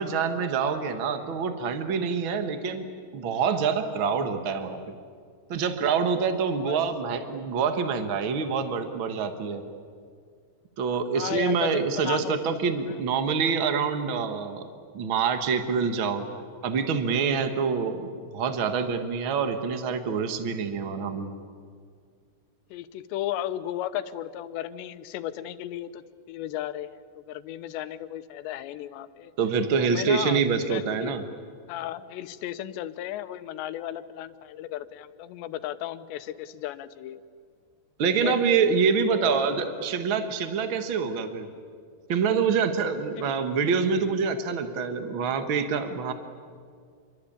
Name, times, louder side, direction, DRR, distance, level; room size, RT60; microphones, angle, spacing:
voice 1, 0.0-2.9 3.1-4.9 5.5-9.6 10.8-14.6 14.9-16.3 16.6-21.3 29.4-31.2 38.0-41.5 42.1-46.1, right 5 dB, 90° right, 7 dB, 1.1 m, -26 dB
voice 2, 11.1-13.0 22.7-26.0 26.3-29.3 29.8-31.1 31.7-37.2 38.1-38.4 39.1-39.5 43.2-43.4, left 12 dB, 85° left, 12 dB, 3.1 m, -35 dB
27.5 x 23.5 x 8.8 m, 2.1 s
omnidirectional pair, 4.9 m